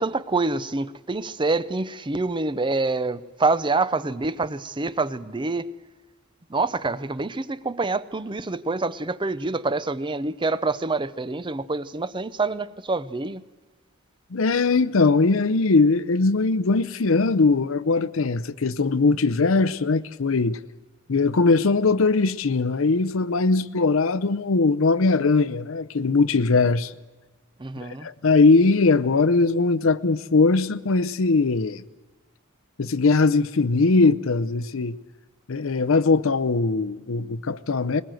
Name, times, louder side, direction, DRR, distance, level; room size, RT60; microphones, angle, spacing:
voice 1, 0.0-5.7 6.5-13.4 27.6-28.1, right 3 dB, 25° right, 0.6 m, -26 dB
voice 2, 14.3-20.6 21.1-26.9 27.8-31.8 32.8-35.0 35.5-38.0, left 3 dB, 70° left, 0.7 m, -20 dB
21.0 x 20.5 x 7.7 m
head